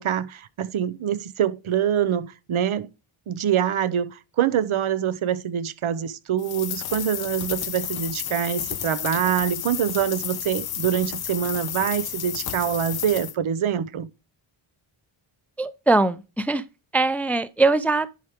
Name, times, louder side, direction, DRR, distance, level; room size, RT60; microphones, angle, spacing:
voice 1, 0.0-2.9 3.3-14.1, right 9 dB, 75° right, 0.9 m, -25 dB
sound 1, 6.4-13.3, left 10 dB, 50° left, 0.6 m, -32 dB
voice 2, 15.6-16.6 16.9-18.1, right 3 dB, 5° left, 0.4 m, -21 dB
10.5 x 4.9 x 3.6 m
wide cardioid pair, 130°, 50 cm